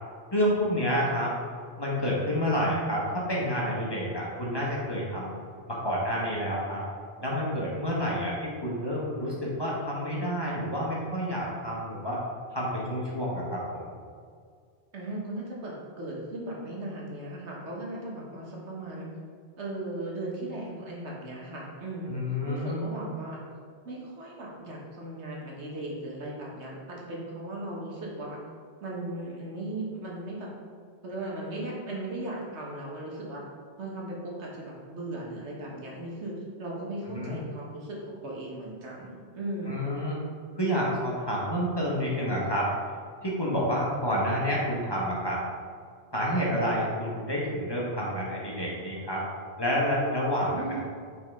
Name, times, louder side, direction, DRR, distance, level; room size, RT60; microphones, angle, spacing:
voice 1, 0.3-1.3 1.8-5.3 5.7-6.8 7.2-12.2 12.5-13.9 22.1-23.1 37.1-37.4 39.7-40.2 40.6-42.7 43.2-45.4 46.1-49.2 49.6-50.8, equal, 25° left, -5 dB, 1.1 m, -29 dB
voice 2, 14.9-19.1 19.6-22.1 22.4-23.4 23.8-28.4 28.8-30.5 31.0-33.4 33.8-36.3 36.6-39.9 50.5-50.8, right 1 dB, 85° right, -3 dB, 1.5 m, -37 dB
5.6 x 4.8 x 3.6 m, 2.1 s
omnidirectional pair, 1.1 m